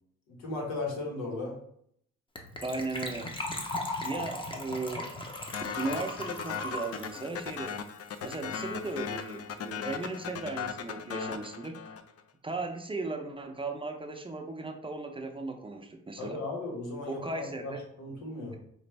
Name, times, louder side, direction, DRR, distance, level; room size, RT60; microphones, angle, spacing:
voice 1, 0.3-1.5 16.2-18.6, left 2 dB, 85° left, -1 dB, 1.4 m, -36 dB
Gurgling / Trickle dribble / Fill (with liquid), 2.4-8.6 8.8-8.9 9.1-9.3 9.6-9.7, left 2 dB, 15° left, 0.8 m, -38 dB
voice 2, 2.6-3.3 4.0-5.1 5.8-7.8 8.2-11.7 12.4-16.4 17.1-17.8, right 3 dB, 15° right, 3 dB, 0.6 m, -36 dB
sound 1, 5.5-12.2, left 7 dB, 55° left, 0.5 m, -38 dB
5.1 x 2.5 x 3.3 m, 0.69 s
cardioid pair, 90°, 30 cm